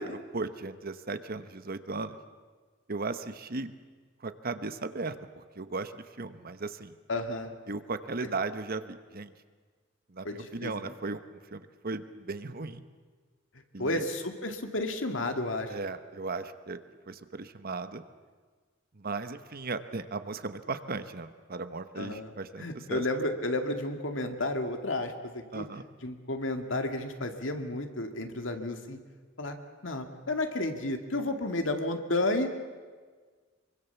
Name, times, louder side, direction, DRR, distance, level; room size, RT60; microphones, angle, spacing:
voice 1, 0.0-2.2 2.9-3.7 4.2-6.9 7.7-9.3 10.1-11.2 11.5-12.8 13.7-14.1 15.7-16.8 17.1-18.0 19.0-23.0 25.5-25.8, right 3 dB, 50° right, 10 dB, 1.2 m, -36 dB
voice 2, 7.1-7.5 8.2-8.3 10.2-10.7 13.8-15.7 22.0-22.3 22.6-29.0 29.4-29.6 29.8-32.6, left 2 dB, 70° left, 5 dB, 2.4 m, -32 dB
25.0 x 23.5 x 7.1 m, 1.5 s
head